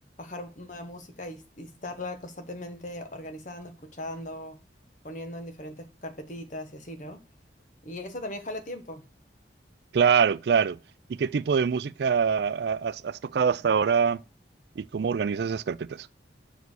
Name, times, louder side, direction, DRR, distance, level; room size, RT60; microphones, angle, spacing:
voice 1, 0.2-4.6 5.0-7.2 7.8-9.0, left 1 dB, 40° left, 1.2 m, -39 dB
voice 2, 9.9-10.8 11.2-14.2 14.8-16.1, right 6 dB, 65° right, 0.3 m, -24 dB
6.8 x 4.8 x 6.2 m
head